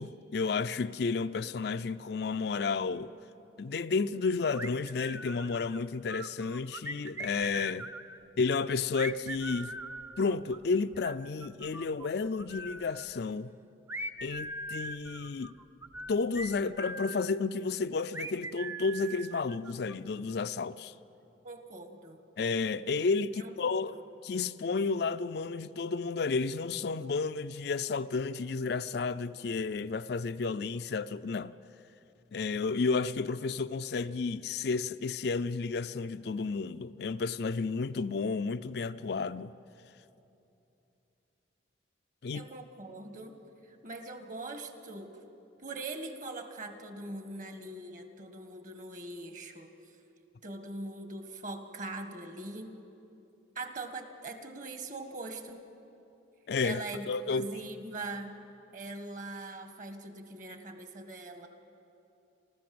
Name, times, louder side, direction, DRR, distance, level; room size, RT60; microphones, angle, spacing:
voice 1, 0.0-3.1 3.6-7.9 8.4-9.8 10.2-13.5 14.2-15.5 16.1-20.9 22.4-24.0 24.2-31.6 32.3-39.5 42.2-42.4 56.5-57.5, left 4 dB, 55° left, 0.4 m, -32 dB
sound 1, 4.5-5.8 6.1-8.2 8.9-12.1 12.4-13.1 13.9-17.3 18.1-19.9, right 1 dB, 10° right, 0.5 m, -41 dB
voice 2, 21.4-22.2 23.3-24.0 42.3-43.4 43.6-45.1 45.6-49.7 50.4-52.7 53.5-55.6 56.6-58.3 58.7-61.5, right 2 dB, 40° right, 1.6 m, -42 dB
28.0 x 14.0 x 7.8 m
head